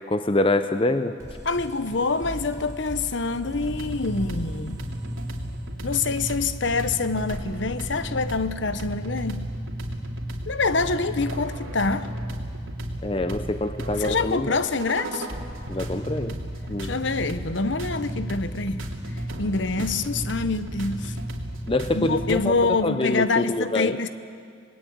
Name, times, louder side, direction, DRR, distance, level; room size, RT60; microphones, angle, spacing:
voice 1, 0.1-1.1 13.0-14.5 15.7-16.3 16.7-16.9 19.8-19.9 21.7-24.0, left 2 dB, 25° left, 0.6 m, -25 dB
sound 1, 1.2-6.5, equal, 15° right, 4.2 m, -40 dB
voice 2, 1.4-4.8 5.8-9.5 10.5-12.1 14.0-15.3 16.8-18.8 19.4-21.2 21.9-24.1, left 3 dB, 65° left, 1.0 m, -26 dB
sound 2, 3.4-22.4, right 1 dB, 90° right, 3.2 m, -33 dB
27.0 x 21.0 x 8.8 m
head